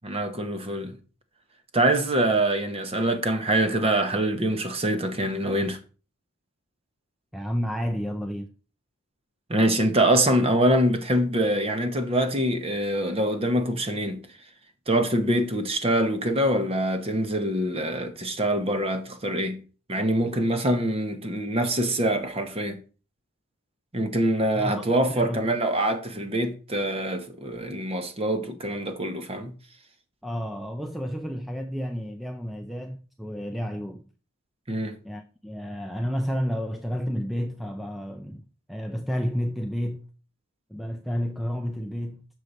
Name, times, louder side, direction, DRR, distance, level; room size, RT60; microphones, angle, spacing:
voice 1, 0.0-1.0 1.7-5.8 9.5-14.2 14.9-19.6 19.9-22.8 23.9-29.5 34.7-35.0, right 1 dB, 25° right, 0.8 m, -24 dB
voice 2, 7.3-8.5 24.6-24.8 25.1-25.5 30.2-34.0 35.0-40.1 40.7-42.3, equal, ahead, 0.4 m, -31 dB
6.5 x 6.5 x 4.1 m
head